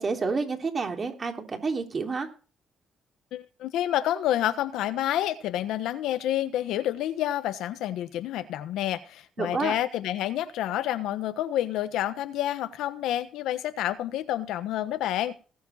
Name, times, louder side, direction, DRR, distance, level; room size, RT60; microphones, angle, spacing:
voice 1, 0.0-2.3 9.4-9.7, right 4 dB, 40° right, 3 dB, 3.2 m, -29 dB
voice 2, 3.3-15.3, left 12 dB, 90° left, 11 dB, 1.2 m, -29 dB
19.5 x 7.4 x 4.2 m, 0.37 s
cardioid pair, 90°, 0 cm